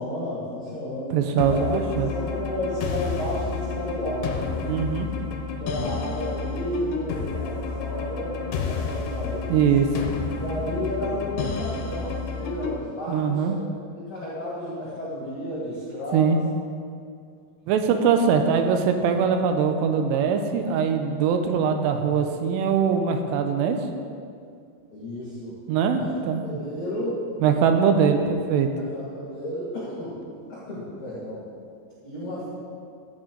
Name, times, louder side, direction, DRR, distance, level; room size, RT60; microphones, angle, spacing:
voice 1, 0.0-1.2 1.5-1.8 2.1-4.6 5.6-9.7 10.3-13.6 13.9-16.4 19.9-20.0 24.9-25.5 25.9-26.1 26.4-27.2 27.7-28.1 28.8-30.2 30.5-31.4 32.0-32.5, left 1 dB, 45° left, -8 dB, 1.8 m, -32 dB
voice 2, 1.1-2.1 4.7-5.1 9.5-9.9 13.1-13.6 16.1-16.4 17.7-23.8 25.7-26.4 27.4-28.7, right 6 dB, 85° right, 6 dB, 3.2 m, -22 dB
sound 1, 1.4-12.8, left 5 dB, 80° left, 2.5 m, -30 dB
14.0 x 8.0 x 3.9 m, 2.3 s
omnidirectional pair, 5.7 m